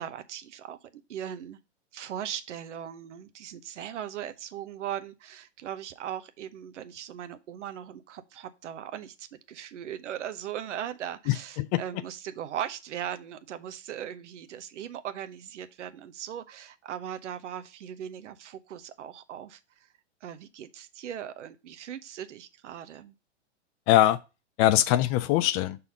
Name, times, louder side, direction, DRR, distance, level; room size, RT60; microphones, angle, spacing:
voice 1, 0.0-1.6 1.9-19.9 20.2-23.1, right 10 dB, 75° right, 1.0 m, -39 dB
voice 2, 11.3-11.8 23.9-24.2 24.6-25.8, left 14 dB, 30° left, 0.4 m, -22 dB
5.7 x 4.1 x 5.2 m
hypercardioid pair, 115°, 36 cm